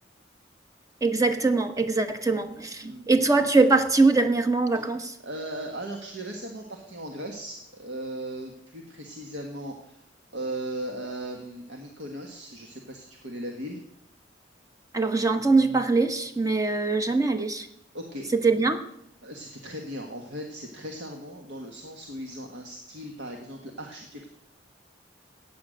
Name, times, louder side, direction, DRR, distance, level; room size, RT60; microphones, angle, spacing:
voice 1, 1.0-5.1 14.9-17.7 18.4-18.8, right 3 dB, 20° right, 8 dB, 1.0 m, -22 dB
voice 2, 5.2-10.0 10.3-13.8 16.6-16.7 17.9-18.3 19.2-24.3, right 1 dB, 65° right, 2 dB, 1.5 m, -37 dB
14.5 x 9.4 x 6.4 m, 0.78 s
head